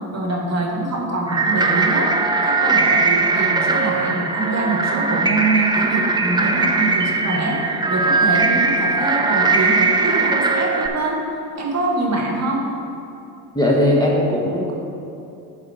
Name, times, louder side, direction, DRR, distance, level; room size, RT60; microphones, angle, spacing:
voice 1, 0.1-2.1 2.4-7.6 7.9-11.2 11.6-12.7, right 2 dB, 35° right, -1 dB, 1.7 m, -24 dB
sound 1, 1.3-10.9, right 4 dB, 10° right, 0.6 m, -19 dB
voice 2, 13.5-14.7, left 1 dB, 10° left, -3 dB, 1.4 m, -18 dB
10.5 x 4.7 x 4.3 m, 2.8 s
supercardioid pair, 75°, 48 cm